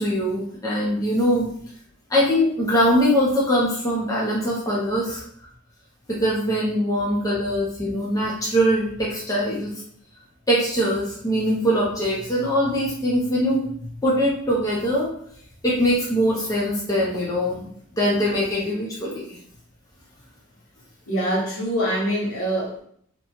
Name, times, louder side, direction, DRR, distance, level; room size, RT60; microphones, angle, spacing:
voice 1, 0.0-1.5 2.1-5.2 6.1-9.7 10.5-13.7 14.0-15.1 15.6-17.7 18.0-19.4, equal, 15° left, -6 dB, 0.5 m, -22 dB
voice 2, 21.1-22.8, right 1 dB, 60° left, -6 dB, 1.2 m, -24 dB
2.8 x 2.2 x 2.9 m, 0.63 s
head